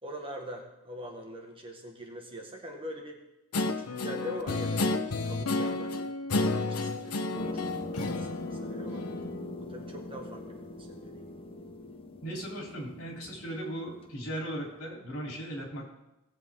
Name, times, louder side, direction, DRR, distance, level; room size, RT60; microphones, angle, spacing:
voice 1, 0.0-3.2 3.9-7.6 7.9-9.1 9.6-11.3, equal, 25° right, 1 dB, 1.5 m, -43 dB
Guitar, 3.5-9.3, left 2 dB, 80° left, 0.9 m, -31 dB
sound 1, 7.3-14.5, left 2 dB, 25° left, 0.9 m, -41 dB
voice 2, 12.2-15.9, right 1 dB, 65° left, -2 dB, 3.7 m, -37 dB
19.0 x 7.5 x 3.7 m, 0.94 s
head